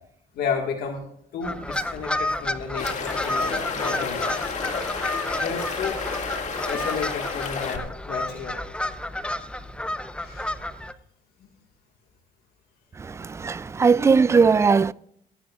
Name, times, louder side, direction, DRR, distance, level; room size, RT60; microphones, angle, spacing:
voice 1, 0.3-1.0 1.3-4.5 4.9-5.0 5.4-6.1 6.6-8.7 10.2-10.5, left 6 dB, 70° left, 1.8 m, -32 dB
sound 1, 1.4-10.9, left 1 dB, 5° left, 0.7 m, -31 dB
sound 2, 2.8-7.8, left 5 dB, 45° left, 2.1 m, -31 dB
voice 2, 13.0-14.9, right 5 dB, 15° right, 0.3 m, -19 dB
20.5 x 11.0 x 2.4 m
cardioid pair, 110°, 17 cm